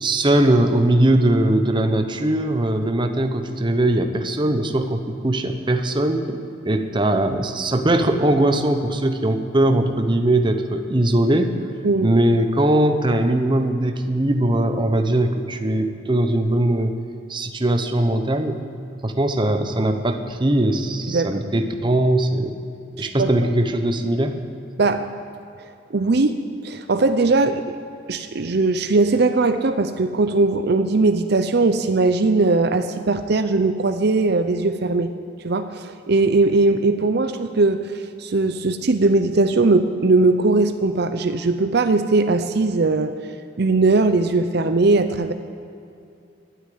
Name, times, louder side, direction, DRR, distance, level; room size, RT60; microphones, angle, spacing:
voice 1, 0.0-11.6 12.0-17.0 17.3-18.6 19.0-22.6 22.9-24.4, right 1 dB, 25° right, 6 dB, 0.9 m, -20 dB
voice 2, 21.1-21.4 23.0-23.3 24.8-25.1 25.9-26.3 26.6-27.8 28.1-35.1 35.4-43.1 43.6-45.3, right 3 dB, 60° right, 9 dB, 0.6 m, -19 dB
12.5 x 9.6 x 9.5 m, 2.7 s
head